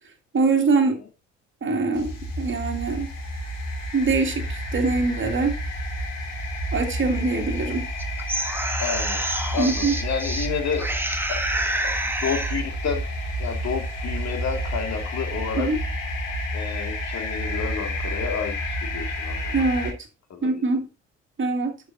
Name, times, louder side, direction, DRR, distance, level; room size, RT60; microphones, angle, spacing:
voice 1, 0.3-1.0 1.6-3.1 3.9-5.5 6.7-7.9 9.6-10.0 15.6-15.8 19.5-20.0 20.4-20.9 21.4-21.8, right 3 dB, 30° right, 2.2 m, -23 dB
sound 1, 1.9-19.9, equal, 75° left, 2.5 m, -30 dB
sound 2, 8.0-10.5 10.8-12.6, right 1 dB, 5° right, 1.4 m, -28 dB
voice 2, 8.8-9.2 9.5-10.9 11.3-11.4 12.2-13.0 13.4-15.7 16.5-19.5 20.3-20.6, left 6 dB, 45° left, 2.1 m, -30 dB
11.0 x 5.6 x 2.6 m
figure-of-eight pair, 50°, 37 cm